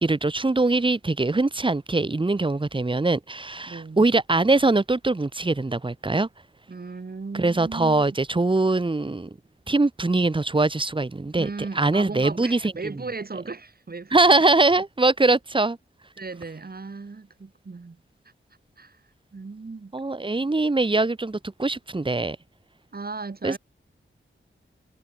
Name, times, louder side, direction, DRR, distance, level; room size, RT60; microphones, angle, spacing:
voice 1, 0.0-6.3 7.4-9.3 9.7-11.5 11.7-12.7 14.1-15.8 19.9-22.4 23.4-23.6, right 2 dB, 25° right, 1.0 m, -22 dB
voice 2, 3.7-4.1 6.7-8.2 11.3-14.5 16.2-18.0 18.8-19.0 19.3-19.9 22.9-23.6, right 4 dB, 45° right, 1.9 m, -36 dB
wide cardioid pair, 85°, 21 cm